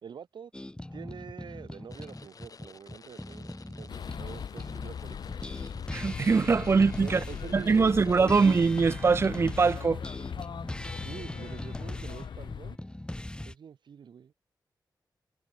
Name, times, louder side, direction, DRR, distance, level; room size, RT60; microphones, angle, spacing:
voice 1, 0.0-0.5 0.9-5.4 7.0-8.4 11.0-12.8 13.5-14.3, right 7 dB, 80° right, 4.0 m, -46 dB
sound 1, 0.5-4.9 5.3-13.5, left 1 dB, 10° left, 4.1 m, -40 dB
sound 2, 1.9-9.2, left 5 dB, 50° left, 5.7 m, -53 dB
sound 3, 3.9-12.8, left 7 dB, 80° left, 2.8 m, -39 dB
voice 2, 5.9-7.2 7.5-10.0, right 4 dB, 35° right, 0.4 m, -23 dB
wide cardioid pair, 100°, 8 cm